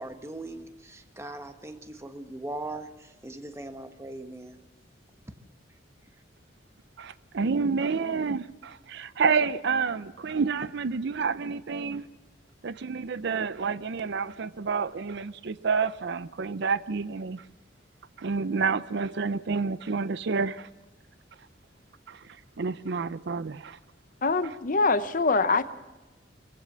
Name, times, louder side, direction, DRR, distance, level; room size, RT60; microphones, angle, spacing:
voice 1, 0.0-4.6, right 2 dB, 15° right, 8 dB, 1.2 m, -40 dB
voice 2, 7.0-12.1 12.6-17.4 18.2-20.7 22.1-22.2 22.6-23.8, right 5 dB, 65° right, 16 dB, 0.6 m, -29 dB
voice 3, 24.2-25.7, left 3 dB, 45° left, 12 dB, 0.8 m, -24 dB
23.5 x 15.5 x 7.4 m, 1.1 s
head